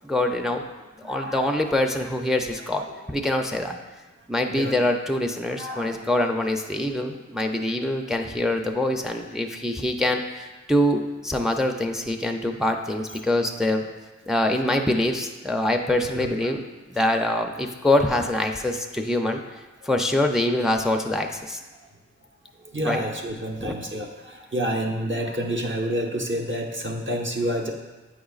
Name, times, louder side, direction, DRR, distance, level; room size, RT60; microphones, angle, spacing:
voice 1, 0.0-0.6 1.0-3.8 4.3-13.9 14.3-19.4 19.8-21.6 22.8-23.0 23.6-23.8, left 1 dB, ahead, 4 dB, 0.4 m, -24 dB
voice 2, 1.1-1.7 4.5-4.8 5.6-5.9 16.1-16.3 22.7-24.1 24.5-27.7, right 1 dB, 40° right, 1 dB, 0.8 m, -28 dB
8.2 x 5.0 x 2.4 m, 1.2 s
wide cardioid pair, 50°, 29 cm